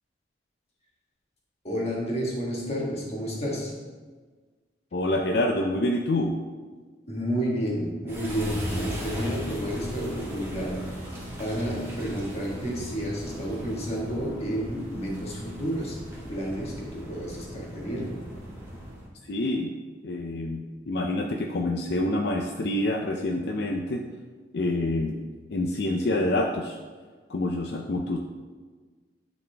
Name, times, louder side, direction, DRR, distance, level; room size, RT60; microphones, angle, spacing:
voice 1, 1.6-3.7 7.1-16.0 16.3-18.2 20.1-20.3, equal, 35° left, -3 dB, 1.6 m, -31 dB
voice 2, 4.9-6.4 19.2-19.7 20.0-24.0 24.5-25.2 25.5-26.8 27.3-28.2, left 1 dB, 65° left, 1 dB, 0.5 m, -27 dB
sound 1, 8.1-19.1, equal, 15° right, 1.7 m, -38 dB
10.5 x 4.2 x 3.4 m, 1.4 s
head